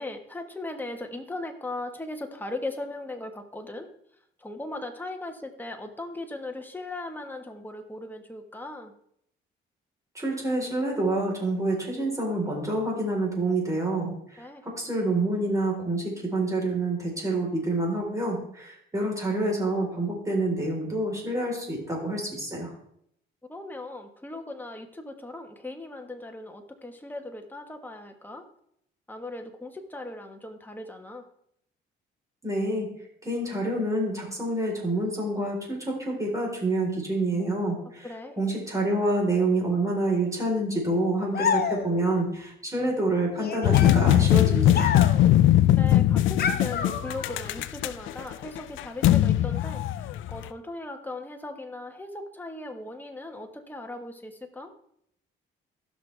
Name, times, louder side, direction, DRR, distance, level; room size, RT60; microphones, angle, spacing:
voice 1, 0.0-3.9 4.4-8.9 14.4-14.7 23.5-28.5 29.1-31.3 38.0-38.4 45.8-54.7, left 2 dB, 10° left, 4 dB, 1.4 m, -38 dB
voice 2, 10.1-22.7 32.4-32.9 33.2-38.1 38.4-44.9, right 2 dB, 15° right, -1 dB, 4.0 m, -27 dB
sound 1, 41.3-42.2 43.4-45.4 46.4-47.5, left 6 dB, 50° left, 1.0 m, -29 dB
sound 2, 43.6-50.5, left 13 dB, 80° left, 0.5 m, -21 dB
16.0 x 6.3 x 3.4 m, 0.72 s
cardioid pair, 90°, 20 cm